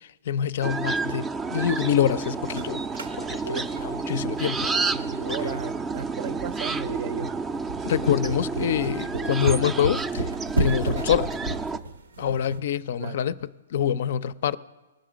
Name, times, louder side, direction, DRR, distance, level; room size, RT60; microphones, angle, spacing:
voice 1, 0.0-2.8 3.2-4.7 5.3-5.5 7.8-10.3 10.6-11.3 12.2-13.3 13.7-14.6, left 9 dB, 60° left, 0.4 m, -26 dB
sound 1, 0.6-11.8, right 4 dB, 15° right, 0.4 m, -30 dB
sound 2, 2.2-12.6, right 1 dB, 85° right, 0.9 m, -33 dB
voice 2, 3.4-3.7 4.8-7.4 13.0-13.2, right 7 dB, 50° right, 0.6 m, -35 dB
19.0 x 6.3 x 5.0 m
hypercardioid pair, 145°, 0 cm